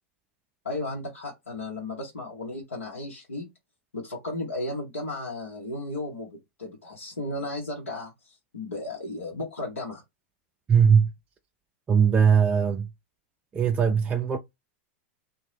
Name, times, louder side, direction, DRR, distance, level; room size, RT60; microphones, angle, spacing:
voice 1, 0.6-3.5 3.9-10.0, left 2 dB, 90° left, 0.9 m, -34 dB
voice 2, 10.7-11.1 11.9-12.9 13.5-14.4, right 7 dB, 20° right, 0.3 m, -20 dB
2.7 x 2.2 x 3.1 m
hypercardioid pair, 95°, 7 cm